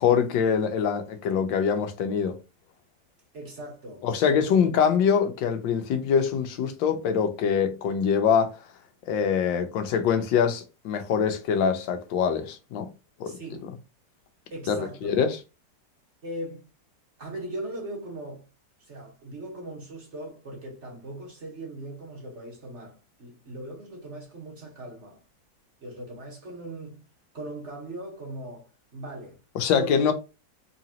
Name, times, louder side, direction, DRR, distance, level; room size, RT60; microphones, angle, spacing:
voice 1, 0.0-2.4 4.0-8.5 9.1-12.9 13.2-13.3 14.7-15.4 29.5-30.1, left 7 dB, 90° left, 1.4 m, -24 dB
voice 2, 3.3-4.1 4.5-4.6 13.2-13.7 14.5-15.2 16.2-16.7 17.2-18.4 18.8-25.2 25.8-27.0 27.3-29.4 29.8-30.1, right 1 dB, 45° right, 1.4 m, -39 dB
4.1 x 3.2 x 2.8 m
omnidirectional pair, 2.0 m